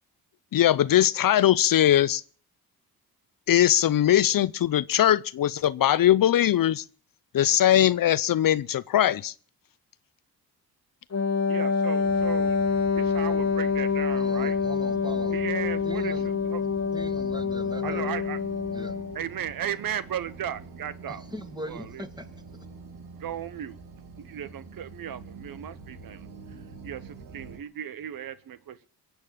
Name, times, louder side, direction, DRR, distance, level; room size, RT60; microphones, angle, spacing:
voice 1, 0.5-2.2 3.5-6.8 7.3-9.3, left 11 dB, 60° left, 0.7 m, -21 dB
Wind instrument woodwind instrument, 11.1-19.2, left 5 dB, 45° left, 1.4 m, -26 dB
voice 2, 11.5-14.6 15.3-16.6 17.8-18.4 19.1-21.2 21.7-22.0 23.2-23.8 24.2-26.3 26.8-28.9, right 9 dB, 65° right, 1.0 m, -36 dB
sound 1, 12.0-27.6, right 4 dB, 90° right, 2.4 m, -45 dB
voice 3, 14.1-15.4 15.8-16.3 16.9-18.1 18.7-19.0 21.1-22.3, equal, 10° right, 2.7 m, -40 dB
23.0 x 8.2 x 7.4 m
cardioid pair, 65°, 38 cm